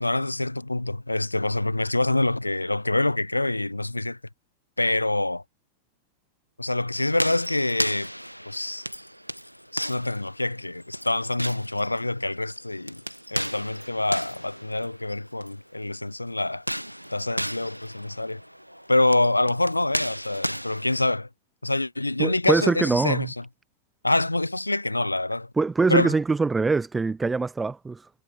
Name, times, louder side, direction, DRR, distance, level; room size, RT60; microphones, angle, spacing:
voice 1, 0.0-4.2 4.8-5.4 6.6-8.1 8.5-8.9 9.7-13.0 13.3-16.6 17.1-18.4 18.9-21.3 21.6-23.4 24.0-25.5 25.9-26.1, left 2 dB, 85° left, 1.3 m, -26 dB
sound 1, 6.9-15.6 16.5-21.2, equal, 90° right, 1.3 m, -35 dB
voice 2, 22.2-23.3 25.6-28.1, right 4 dB, 10° right, 0.3 m, -23 dB
figure-of-eight pair, 90°, 0 cm